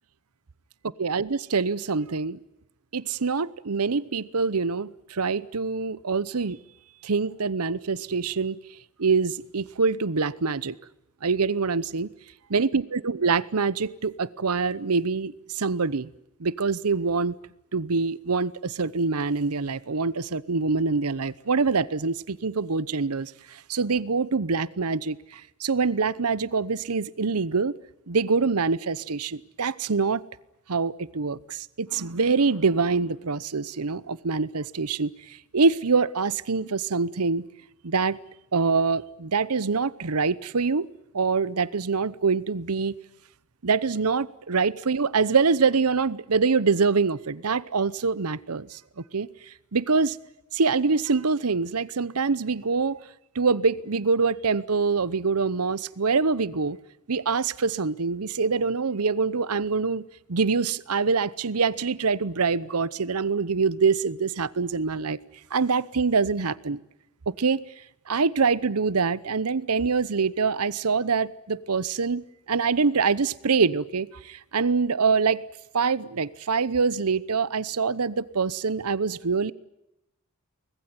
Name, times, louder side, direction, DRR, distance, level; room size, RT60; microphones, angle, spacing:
voice 1, 1.0-2.4 2.9-6.6 7.0-8.6 9.0-10.8 11.2-12.1 12.5-16.1 16.4-17.3 17.7-27.7 28.1-30.2 30.7-35.1 35.5-37.4 37.8-38.2 38.5-40.9 41.1-42.9 43.6-48.8 49.1-49.3 49.7-50.2 50.5-53.0 53.3-56.8 57.1-65.2 65.5-66.8 67.3-67.6 68.1-75.4 75.7-79.5, right 4 dB, 85° right, 19 dB, 0.9 m, -25 dB
24.5 x 20.0 x 9.6 m, 0.87 s
head